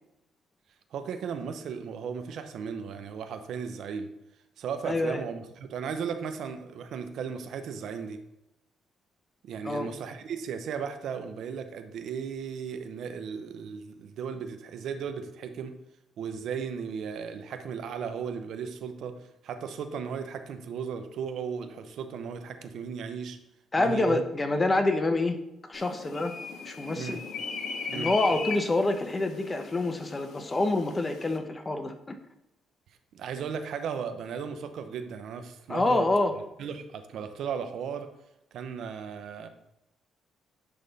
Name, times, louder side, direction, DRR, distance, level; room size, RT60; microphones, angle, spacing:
voice 1, 0.9-4.1 4.6-8.2 9.4-15.8 16.2-23.4 23.8-24.2 26.9-27.2 27.9-28.1 33.1-36.1 36.6-38.1 38.5-39.5, right 6 dB, 75° right, 8 dB, 0.7 m, -36 dB
voice 2, 4.9-5.2 9.6-9.9 23.7-25.4 25.7-26.3 26.6-27.2 27.9-32.2 35.7-36.3, left 2 dB, 25° left, 7 dB, 0.9 m, -27 dB
sound 1, 25.7-31.4, left 5 dB, 70° left, 1.0 m, -39 dB
10.0 x 3.6 x 4.0 m, 0.87 s
cardioid pair, 90°, 0 cm